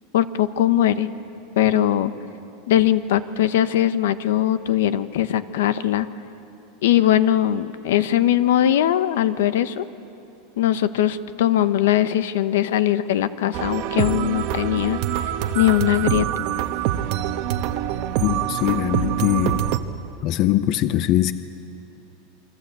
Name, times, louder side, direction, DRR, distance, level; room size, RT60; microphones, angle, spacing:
voice 1, 0.1-1.1 1.6-2.1 2.7-6.1 6.8-9.8 10.6-15.0 15.5-16.2, left 12 dB, 75° left, 13 dB, 1.1 m, -20 dB
sound 1, 13.5-19.8, right 11 dB, 40° right, 1.1 m, -25 dB
voice 2, 18.2-19.6 20.2-21.3, left 13 dB, 35° left, 12 dB, 0.6 m, -21 dB
28.5 x 24.0 x 8.4 m, 2.8 s
supercardioid pair, 175°, 0 cm